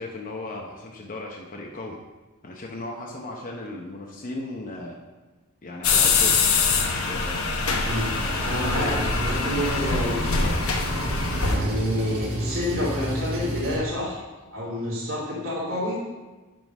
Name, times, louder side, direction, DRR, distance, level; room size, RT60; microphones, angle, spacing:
voice 1, 0.0-2.0 2.4-5.0 5.6-6.4 6.8-7.6 8.2-9.1, left 2 dB, 40° left, 0 dB, 0.8 m, -36 dB
sound 1, 5.8-11.5, left 4 dB, 70° left, 1.0 m, -24 dB
Engine, 7.7-13.7, right 1 dB, 45° right, 2.6 m, -32 dB
voice 2, 8.4-10.5 11.4-14.2 14.5-16.0, left 1 dB, 65° right, -8 dB, 2.7 m, -28 dB
10.5 x 3.9 x 5.3 m, 1.2 s
head